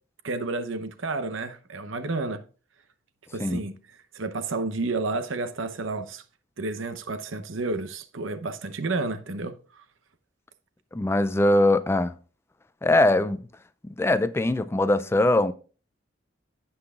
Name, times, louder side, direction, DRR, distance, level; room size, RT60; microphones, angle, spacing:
voice 1, 0.2-2.4 3.3-3.8 4.1-6.2 6.6-9.5, right 3 dB, 80° right, 0.8 m, -30 dB
voice 2, 10.9-12.1 12.8-13.4 13.8-15.5, left 1 dB, 15° left, 0.3 m, -21 dB
16.5 x 5.7 x 2.4 m
head